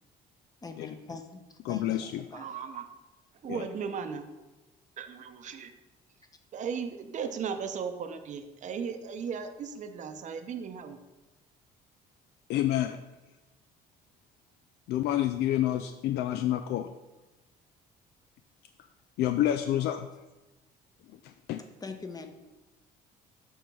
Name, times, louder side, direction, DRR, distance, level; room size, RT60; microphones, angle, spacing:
voice 1, 0.6-2.5 21.8-22.3, left 4 dB, 20° left, 6 dB, 0.9 m, -43 dB
voice 2, 1.7-2.1 3.5-3.6 12.5-13.0 14.9-16.9 19.2-20.1 21.2-21.6, left 12 dB, 75° left, 9 dB, 0.4 m, -28 dB
voice 3, 2.3-2.8 3.4-4.3 5.0-5.7 6.5-11.0, right 6 dB, 45° right, 7 dB, 0.7 m, -36 dB
7.0 x 3.5 x 5.9 m, 1.1 s
cardioid pair, 110°, 17 cm